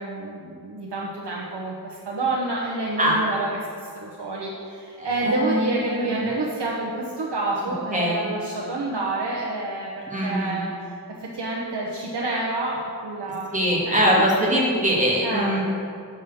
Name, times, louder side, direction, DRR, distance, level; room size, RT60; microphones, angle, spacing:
voice 1, 0.0-3.5 3.8-14.3 15.2-15.5, right 2 dB, 80° right, -4 dB, 1.0 m, -28 dB
voice 2, 5.0-6.3 7.9-8.3 10.1-10.6 13.5-15.6, equal, 20° right, -4 dB, 2.1 m, -22 dB
7.4 x 5.2 x 6.8 m, 2.4 s
wide cardioid pair, 75°, 40 cm